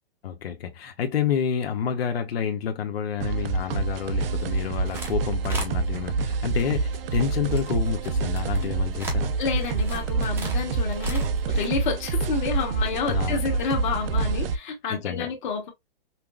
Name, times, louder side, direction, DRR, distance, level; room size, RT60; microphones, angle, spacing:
voice 1, 0.2-9.3 13.0-13.6 14.9-15.3, left 8 dB, 85° left, 0.8 m, -29 dB
sound 1, 3.2-14.6, right 4 dB, 70° right, 0.6 m, -27 dB
sound 2, 4.4-5.1 5.4-5.7 6.5-11.6, right 1 dB, 5° right, 0.6 m, -37 dB
voice 2, 9.4-15.7, left 5 dB, 55° left, 1.4 m, -29 dB
5.6 x 2.0 x 2.2 m
hypercardioid pair, 160°, 30 cm